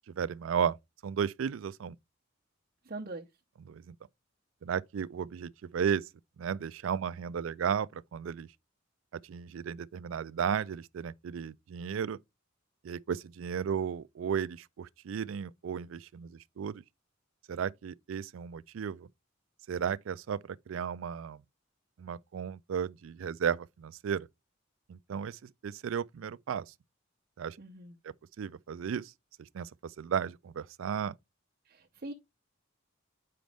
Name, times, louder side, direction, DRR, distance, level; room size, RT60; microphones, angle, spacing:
voice 1, 0.1-0.8 1.0-2.0 3.6-4.0 4.6-6.1 6.4-8.5 9.1-12.2 12.8-16.8 17.5-19.1 19.7-21.4 22.0-24.3 24.9-26.7 27.4-27.6 28.0-29.1 29.4-31.1, right 7 dB, 75° right, 0.4 m, -34 dB
voice 2, 2.9-3.2 27.6-27.9 31.7-32.1, right 2 dB, 45° right, 0.8 m, -42 dB
7.6 x 5.1 x 3.4 m
head